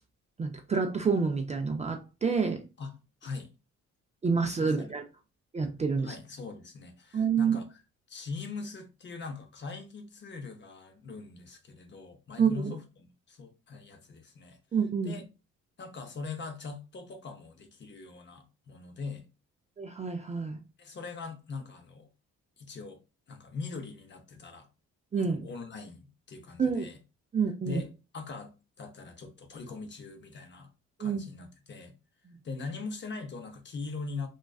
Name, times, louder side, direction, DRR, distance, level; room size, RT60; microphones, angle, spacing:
voice 1, 0.4-2.6 4.2-5.0 5.5-6.2 7.1-7.6 12.4-12.7 14.7-15.2 19.8-20.6 25.1-25.4 26.6-26.9 27.3-27.8 31.0-31.2 32.3-32.4, right 5 dB, 25° right, 0.3 m, -28 dB
voice 2, 2.8-3.5 4.6-4.9 6.0-7.8 8.1-14.6 15.0-15.2 15.8-19.2 20.8-22.1 22.6-23.0 23.3-24.7 25.2-27.0 27.6-30.7 31.0-31.9 32.4-34.3, left 4 dB, 35° left, 0.6 m, -41 dB
2.3 x 2.3 x 2.3 m
cardioid pair, 90°, 30 cm